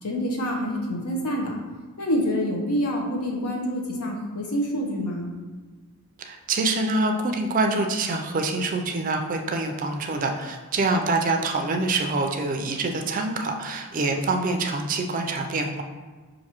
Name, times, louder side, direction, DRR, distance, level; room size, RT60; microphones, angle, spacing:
voice 1, 0.0-1.6 2.0-5.3, equal, 90° left, 0 dB, 0.8 m, -27 dB
voice 2, 6.3-15.8, right 3 dB, 35° right, 4 dB, 0.4 m, -25 dB
5.8 x 2.6 x 2.9 m, 1.3 s
head